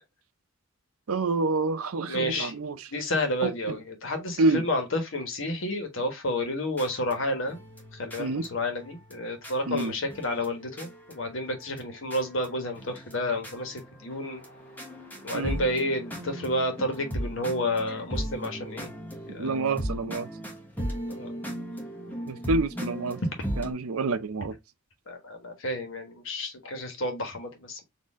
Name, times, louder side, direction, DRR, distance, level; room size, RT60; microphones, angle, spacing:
voice 1, 1.1-2.9 3.4-3.8 4.4-4.6 8.2-8.5 9.7-9.9 15.3-15.6 19.3-20.3 22.3-23.2 23.6-24.5, right 3 dB, 85° right, 0.6 m, -28 dB
voice 2, 2.0-2.5 2.9-7.6 7.9-14.4 15.2-18.9 19.3-19.6 21.1-21.4 25.1-27.8, left 1 dB, 65° left, 1.3 m, -30 dB
sound 1, 6.8-11.8 12.1-12.5 12.7-23.7, equal, 10° left, 1.0 m, -37 dB
4.3 x 2.7 x 3.5 m
head